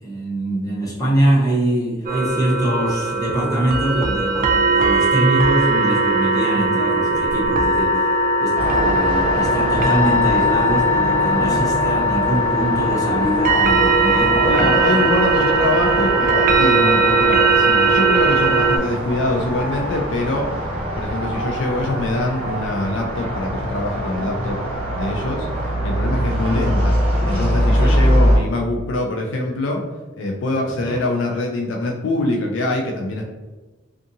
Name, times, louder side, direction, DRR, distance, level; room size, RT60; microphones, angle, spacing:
voice 1, 0.0-8.1 8.4-15.1 27.8-28.0 30.8-31.0, right 1 dB, 20° left, -6 dB, 0.9 m, -23 dB
sound 1, 2.1-18.8, right 2 dB, 45° right, 0.3 m, -19 dB
sound 2, 8.5-28.4, equal, 30° right, 1.2 m, -23 dB
voice 2, 14.5-20.5 21.0-24.6 24.9-29.8 30.2-33.2, left 2 dB, 70° left, 0 dB, 0.4 m, -24 dB
2.6 x 2.5 x 2.6 m, 1.2 s
head